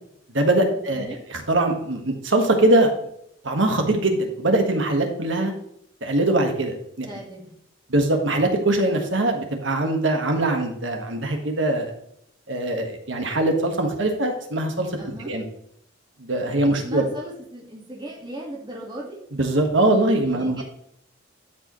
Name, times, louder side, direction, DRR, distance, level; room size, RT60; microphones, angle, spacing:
voice 1, 0.3-2.9 3.4-5.5 6.0-7.1 7.9-11.9 12.5-14.9 15.2-15.4 16.2-17.0 19.3-20.6, right 2 dB, 75° right, 4 dB, 1.6 m, -22 dB
voice 2, 7.1-7.5 15.0-15.3 16.8-19.2 20.3-20.6, right 1 dB, 25° right, -3 dB, 1.8 m, -37 dB
12.5 x 4.9 x 3.2 m, 0.74 s
head